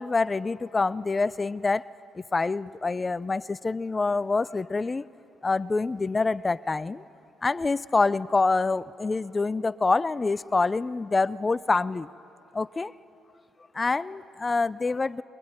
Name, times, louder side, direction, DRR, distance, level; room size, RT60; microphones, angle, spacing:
voice 1, 0.0-1.8 2.3-5.0 5.4-7.0 7.4-12.1 12.6-12.9 13.8-15.2, left 3 dB, 25° left, 17 dB, 0.5 m, -26 dB
21.5 x 21.0 x 9.8 m, 2.8 s
cardioid pair, 90°, 0 cm